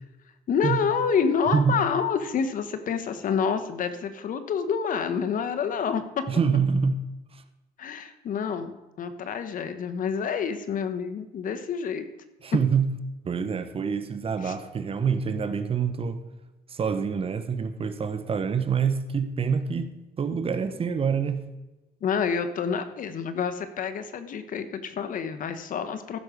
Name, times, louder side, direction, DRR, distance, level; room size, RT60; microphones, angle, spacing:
voice 1, 0.5-6.0 7.8-8.7 9.0-12.0 14.4-14.5 22.0-26.2, left 6 dB, 55° left, 1.2 m, -28 dB
voice 2, 6.3-7.0 7.3-7.4 12.4-12.9 13.2-16.2 16.7-19.9 20.2-21.5, right 6 dB, 35° right, 0.9 m, -26 dB
15.0 x 6.3 x 5.1 m
cardioid pair, 110°, 17 cm